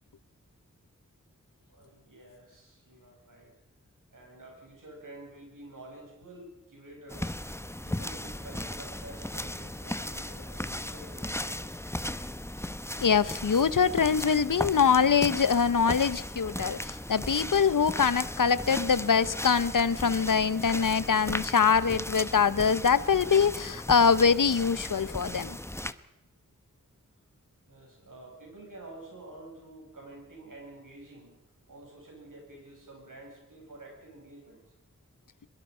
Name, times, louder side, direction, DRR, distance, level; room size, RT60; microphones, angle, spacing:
voice 1, 1.7-3.5 4.1-7.4 7.8-11.8 27.7-31.4 31.7-34.6, right 2 dB, 90° right, -1 dB, 7.9 m, -49 dB
sound 1, 7.1-25.9, left 1 dB, 10° left, 0.8 m, -37 dB
voice 2, 13.0-25.6, left 6 dB, 90° left, 17 dB, 0.8 m, -24 dB
23.0 x 22.0 x 5.5 m, 0.90 s
wide cardioid pair, 60°, 31 cm